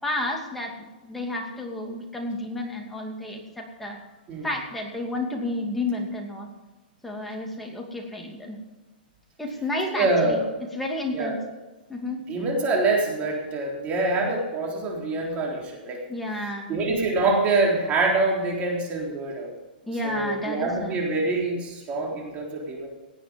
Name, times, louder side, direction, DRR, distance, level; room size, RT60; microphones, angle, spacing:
voice 1, 0.0-4.0 4.4-6.5 7.0-8.6 9.4-10.4 10.7-11.4 11.9-12.2 16.1-16.8 19.9-21.0, left 1 dB, 5° left, 0 dB, 2.6 m, -31 dB
voice 2, 9.9-10.4 11.1-11.3 12.3-16.0 16.7-19.5 20.0-22.9, right 3 dB, 25° right, -1 dB, 3.9 m, -25 dB
17.5 x 8.7 x 5.4 m, 1.2 s
hypercardioid pair, 140°, 5 cm